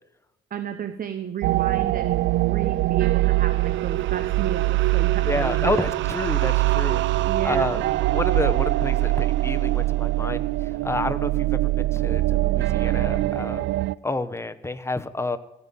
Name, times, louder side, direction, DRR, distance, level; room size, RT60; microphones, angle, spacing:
voice 1, 0.5-5.8 7.2-7.8, right 8 dB, 45° right, 9 dB, 0.9 m, -33 dB
sound 1, 1.4-13.9, right 17 dB, 75° right, 0.4 m, -23 dB
voice 2, 5.2-7.8 8.1-13.7 14.0-15.4, left 2 dB, 15° left, 10 dB, 0.9 m, -29 dB
16.0 x 5.7 x 7.5 m, 0.93 s
cardioid pair, 90°, 20 cm